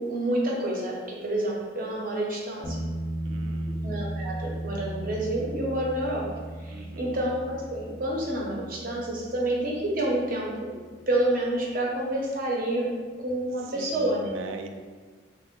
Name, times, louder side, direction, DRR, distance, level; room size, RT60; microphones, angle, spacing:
voice 1, 0.0-2.8 3.8-6.3 6.6-10.7 11.1-12.9 13.2-14.3, right 1 dB, 45° right, -3 dB, 0.6 m, -28 dB
sound 1, 2.6-10.2 13.3-13.4, right 1 dB, 15° left, 0.3 m, -36 dB
voice 2, 3.2-3.9 6.7-7.2 13.5-14.7, right 3 dB, 90° right, 6 dB, 0.3 m, -41 dB
2.8 x 2.0 x 3.5 m, 1.5 s
head